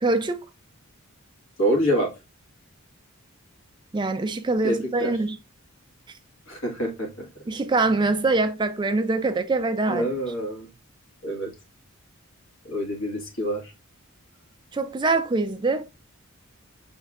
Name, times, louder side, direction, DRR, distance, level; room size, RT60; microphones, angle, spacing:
voice 1, 0.0-0.5 3.9-5.4 7.5-10.0 14.7-15.8, right 3 dB, 20° right, 0.3 m, -24 dB
voice 2, 1.6-2.1 4.6-5.2 6.5-7.3 9.9-10.7 11.2-11.5 12.6-13.7, equal, 65° left, 1.6 m, -26 dB
6.3 x 3.4 x 2.3 m
head